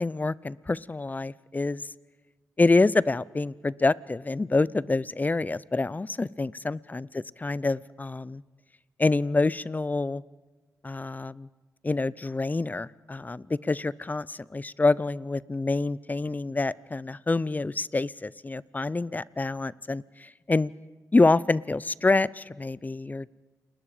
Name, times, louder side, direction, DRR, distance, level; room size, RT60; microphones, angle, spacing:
voice 1, 0.0-1.8 2.6-8.4 9.0-10.2 10.8-11.5 11.8-20.7 21.1-23.3, left 3 dB, 25° left, 21 dB, 0.6 m, -26 dB
29.5 x 20.5 x 5.0 m, 1.3 s
cardioid pair, 75°, 6 cm